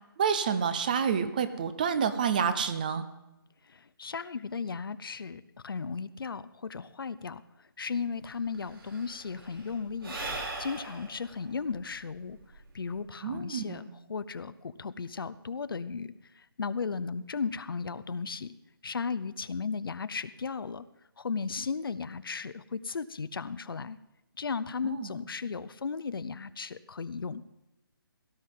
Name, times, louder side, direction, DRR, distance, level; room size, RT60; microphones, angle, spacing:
voice 1, 0.2-3.0 13.2-13.9 24.8-25.1, right 7 dB, 20° right, 12 dB, 0.6 m, -28 dB
voice 2, 4.0-7.4 7.8-10.2 10.6-12.4 12.7-16.1 16.6-18.5 18.8-20.8 21.2-24.0 24.4-27.4, left 5 dB, 65° left, 14 dB, 0.7 m, -35 dB
Sigh / Breathing, 8.0-8.1 8.3-13.0, right 2 dB, 70° right, 4.0 m, -40 dB
18.0 x 12.0 x 3.8 m, 0.95 s
hypercardioid pair, 165°, 12 cm